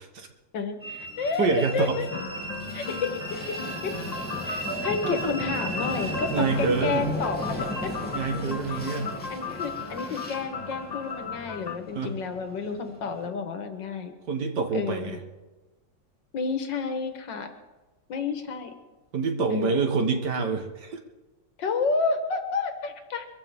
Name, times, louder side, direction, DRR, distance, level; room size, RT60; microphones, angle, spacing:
voice 1, 0.5-1.5 1.7-2.2 2.7-3.1 3.5-3.6 3.8-3.9 4.4-7.9 8.4-14.1 14.7-15.2 16.3-17.5 18.1-18.7 19.5-19.8 21.6-23.3, left 4 dB, 90° left, 6 dB, 2.1 m, -30 dB
Train, 0.8-13.3, equal, 5° left, 2.5 m, -36 dB
voice 2, 1.4-2.0 5.0-5.1 6.3-7.0 8.1-9.1 11.9-12.1 14.3-15.2 19.1-21.0, right 4 dB, 70° right, 5 dB, 2.1 m, -26 dB
sound 1, 2.1-11.8, left 5 dB, 35° left, 0.7 m, -37 dB
23.0 x 15.0 x 3.7 m, 1.2 s
omnidirectional pair, 1.9 m